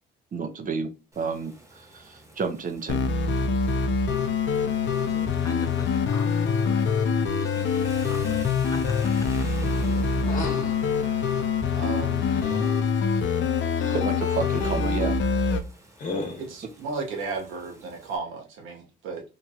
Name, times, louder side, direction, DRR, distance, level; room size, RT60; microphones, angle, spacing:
voice 1, 0.3-3.3 13.9-15.2, right 5 dB, 45° right, 0.7 m, -31 dB
Rain, 1.1-18.2, equal, 15° right, 1.1 m, -46 dB
sound 1, 2.9-15.6, left 5 dB, 70° left, 0.5 m, -25 dB
voice 2, 5.1-8.4 8.7-9.9, left 2 dB, 15° left, 0.7 m, -44 dB
sound 2, 10.2-10.8 12.3-12.8 13.8-14.1 14.5-15.0 16.0-16.5, left 2 dB, 40° left, 1.0 m, -34 dB
voice 3, 11.7-12.3 16.4-19.2, right 4 dB, 85° right, 1.0 m, -34 dB
2.9 x 2.8 x 2.3 m
cardioid pair, 90°, 20 cm